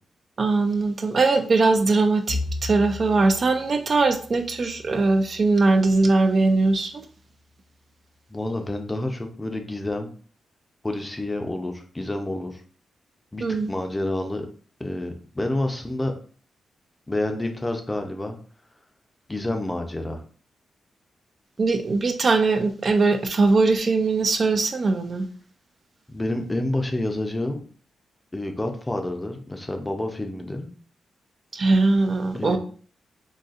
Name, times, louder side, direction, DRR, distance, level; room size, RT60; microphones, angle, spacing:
voice 1, 0.4-7.1 13.4-13.7 21.6-25.3 31.5-32.6, right 3 dB, 50° right, 6 dB, 0.4 m, -21 dB
Bowed string instrument, 2.3-6.7, left 2 dB, 90° right, 1.0 m, -36 dB
voice 2, 8.3-10.1 10.8-12.6 13.3-14.5 14.8-16.1 17.1-18.4 19.3-20.2 26.1-27.6 28.3-30.7 32.3-32.6, left 1 dB, 20° left, 5 dB, 0.5 m, -28 dB
4.0 x 2.4 x 2.4 m, 0.43 s
cardioid pair, 85°, 0 cm